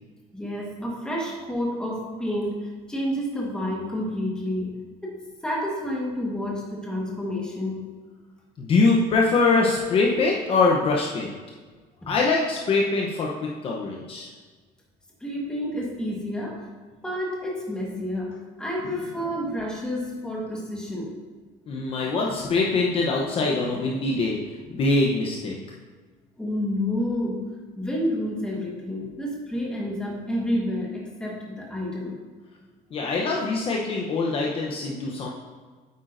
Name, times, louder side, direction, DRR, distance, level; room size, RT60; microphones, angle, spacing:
voice 1, 0.3-7.8 12.0-12.1 15.2-16.7 17.0-21.1 26.4-32.1, left 1 dB, 5° left, -2 dB, 1.3 m, -29 dB
voice 2, 8.6-11.3 12.1-14.3 21.7-24.4 24.7-25.6 32.9-35.3, left 3 dB, 35° left, -2 dB, 0.8 m, -23 dB
9.0 x 8.2 x 2.6 m, 1.4 s
cardioid pair, 180°, 17 cm